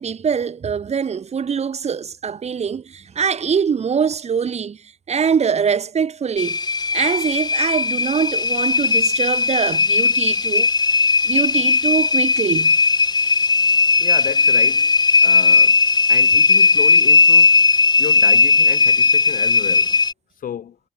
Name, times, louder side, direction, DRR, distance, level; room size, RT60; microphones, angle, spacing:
voice 1, 0.0-4.8 5.1-6.6 6.9-12.8, right 6 dB, 45° right, 0.9 m, -23 dB
sound 1, 6.4-20.1, left 4 dB, 25° left, 0.6 m, -16 dB
voice 2, 14.0-14.9 15.2-15.8 16.1-17.6 18.0-20.0 20.4-20.8, left 9 dB, 65° left, 3.0 m, -32 dB
hypercardioid pair, 40°, 15 cm